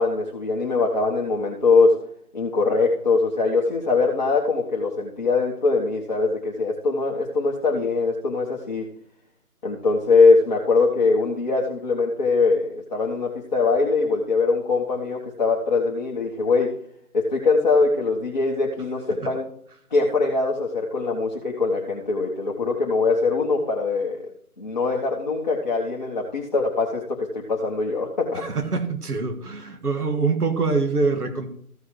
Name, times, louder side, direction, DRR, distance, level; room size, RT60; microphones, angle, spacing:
voice 1, 0.0-1.9 2.3-8.9 9.6-16.7 17.1-19.4 19.9-24.2 24.6-27.0 27.3-28.4, left 3 dB, 30° left, -3 dB, 1.1 m, -22 dB
voice 2, 28.3-31.5, right 4 dB, 80° right, 6 dB, 2.0 m, -24 dB
15.0 x 5.4 x 4.8 m, 0.64 s
figure-of-eight pair, 165°, 45 cm